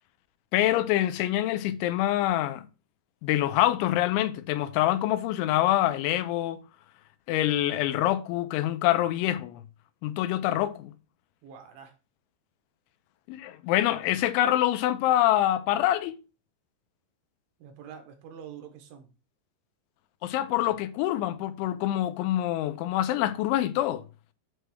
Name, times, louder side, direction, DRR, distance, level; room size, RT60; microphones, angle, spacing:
voice 1, 0.5-2.7 3.2-6.6 7.3-9.6 10.0-10.9 13.3-16.2 20.2-24.0, left 13 dB, 85° left, 3.0 m, -25 dB
voice 2, 11.4-11.9 17.6-19.1, right 8 dB, 80° right, 3.8 m, -45 dB
8.9 x 3.3 x 6.3 m
omnidirectional pair, 5.4 m